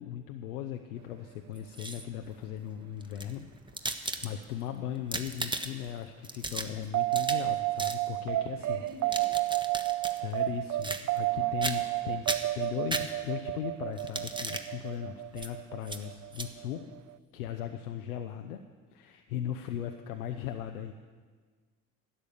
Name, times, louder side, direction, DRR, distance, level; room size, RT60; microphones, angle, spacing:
voice 1, 0.0-3.5 3.8-8.8 10.0-12.3 12.5-17.0 17.3-18.6 18.9-20.9, left 10 dB, 85° left, 5 dB, 0.6 m, -38 dB
sound 1, 1.5-2.2 3.0-4.6 5.0-5.9 6.2-7.5 7.8-8.0 8.9-10.2 10.8-11.3 11.6-12.0 12.2-13.5 14.0-14.7 15.4-15.5 15.8-16.0 16.3-16.5, right 2 dB, 10° right, 1.1 m, -36 dB
sound 2, 6.9-17.1, right 18 dB, 40° right, 0.4 m, -31 dB
voice 2, 8.6-9.5 11.3-12.2, right 3 dB, 80° right, 5 dB, 1.4 m, -49 dB
12.5 x 8.8 x 6.9 m, 1.5 s
hypercardioid pair, 45°, 43 cm